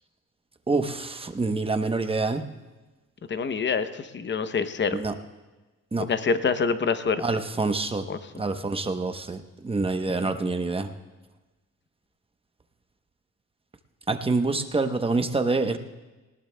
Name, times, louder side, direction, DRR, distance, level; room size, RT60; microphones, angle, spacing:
voice 1, 0.7-2.4 4.9-5.1 5.9-6.1 7.2-8.0 8.4-10.9 14.1-15.8, right 3 dB, 20° right, 7 dB, 0.9 m, -26 dB
voice 2, 3.3-5.0 6.0-7.2 8.1-8.2 10.2-10.3, left 5 dB, 40° left, 11 dB, 0.8 m, -26 dB
19.5 x 17.5 x 2.3 m, 1.2 s
cardioid pair, 90°, 30 cm